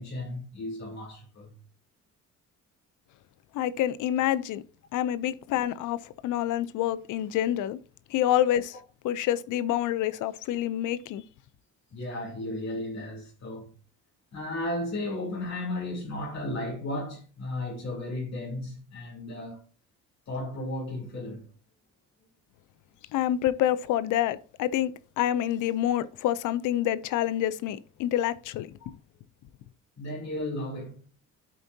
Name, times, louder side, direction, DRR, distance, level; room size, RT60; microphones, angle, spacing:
voice 1, 0.0-1.5 11.9-13.7 14.3-19.6 20.3-21.5 28.8-28.9 30.0-31.0, left 1 dB, 60° left, 3.4 m, -34 dB
voice 2, 3.5-4.6 4.9-7.8 8.1-8.8 9.0-11.2 23.1-28.9, left 12 dB, 80° left, 0.5 m, -27 dB
12.5 x 4.5 x 2.7 m
cardioid pair, 90°, 30 cm